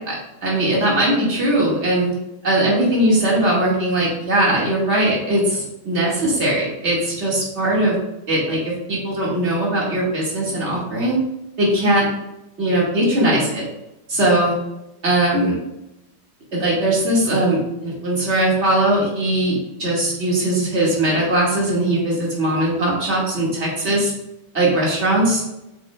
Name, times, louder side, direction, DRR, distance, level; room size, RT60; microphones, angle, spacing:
voice 1, 0.4-2.1 2.4-8.0 8.3-11.2 11.6-12.1 12.6-13.6 14.1-14.5 15.0-15.6 16.5-24.1 24.5-25.4, right 1 dB, 35° right, -4 dB, 2.2 m, -20 dB
8.0 x 5.9 x 2.3 m, 0.93 s
omnidirectional pair, 2.3 m